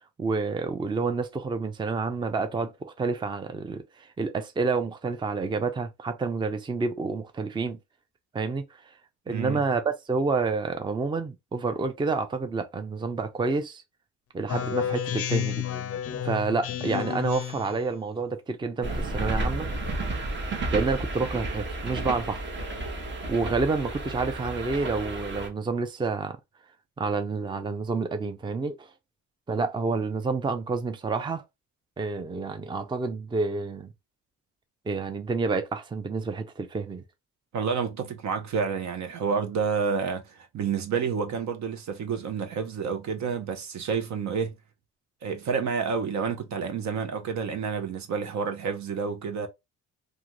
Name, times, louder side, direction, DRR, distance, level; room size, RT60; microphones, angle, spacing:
voice 1, 0.2-7.8 8.3-8.9 9.3-13.8 14.3-15.6 16.2-19.7 20.7-22.4 23.3-26.4 27.0-28.9 29.5-31.4 32.0-33.9 34.9-37.0, right 4 dB, 15° right, 0.5 m, -29 dB
voice 2, 9.3-9.6 37.5-44.5 45.2-49.5, right 6 dB, 65° right, 0.9 m, -29 dB
Speech synthesizer, 14.5-17.8, left 10 dB, 50° left, 0.4 m, -30 dB
sound 1, 18.8-25.5, right 2 dB, 35° right, 1.0 m, -32 dB
2.6 x 2.4 x 3.0 m
cardioid pair, 90°, 30 cm